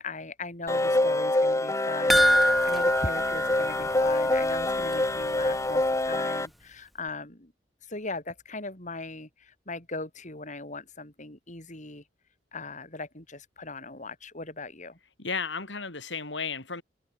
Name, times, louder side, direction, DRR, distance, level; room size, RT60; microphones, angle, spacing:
voice 1, 0.0-7.5 7.9-12.0 12.5-15.0, left 3 dB, 45° left, 7.0 m, -39 dB
sound 1, 0.7-6.5, left 1 dB, 15° left, 1.1 m, -26 dB
sound 2, 2.1-4.6 4.9-5.0 5.5-5.6, equal, ahead, 0.6 m, -25 dB
voice 2, 15.2-16.8, left 5 dB, 85° left, 4.8 m, -33 dB
head